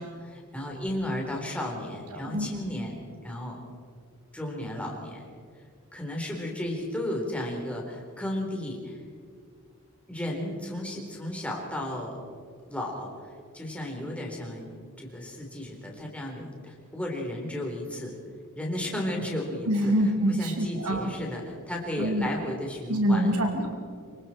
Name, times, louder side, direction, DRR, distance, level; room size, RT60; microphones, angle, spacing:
voice 1, 0.0-3.6 4.3-5.3 5.9-9.0 10.1-12.2 12.6-13.1 13.5-14.6 15.0-18.1 18.6-19.9 20.3-23.3, left 1 dB, 5° left, -1 dB, 3.9 m, -34 dB
voice 2, 19.7-21.1 22.0-22.3 22.9-23.8, equal, 90° right, 3 dB, 2.6 m, -25 dB
26.0 x 24.0 x 4.4 m, 2.1 s
head